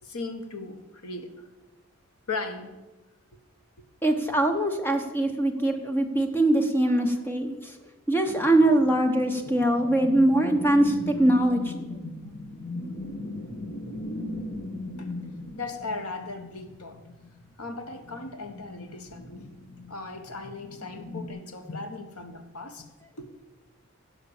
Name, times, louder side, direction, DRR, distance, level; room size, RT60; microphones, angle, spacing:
voice 1, 0.0-1.5 2.3-2.7 15.0-15.1 15.5-17.0 17.6-19.5 19.9-22.9 23.2-23.3, left 3 dB, 80° left, 1.4 m, -37 dB
voice 2, 4.0-7.7 8.1-11.8 21.7-21.8, right 1 dB, 10° left, 1.0 m, -22 dB
sound 1, 8.2-21.3, left 2 dB, 40° left, 1.4 m, -38 dB
16.0 x 5.7 x 7.2 m
head